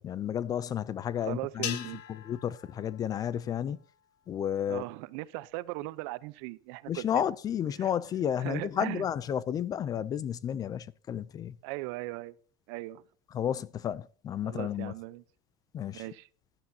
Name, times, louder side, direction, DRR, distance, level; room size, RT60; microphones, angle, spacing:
voice 1, 0.0-3.8 4.3-4.8 6.9-11.5 13.3-14.9 15.7-16.0, left 9 dB, 25° left, 0.4 m, -32 dB
voice 2, 1.2-2.0 4.7-7.2 7.8-7.9 8.4-9.0 11.6-12.3 12.7-13.0 14.4-15.2 15.9-16.3, right 19 dB, 65° right, 0.7 m, -38 dB
sound 1, 1.6-4.1, left 12 dB, 70° left, 1.2 m, -42 dB
12.5 x 12.0 x 2.8 m
supercardioid pair, 150°, 14 cm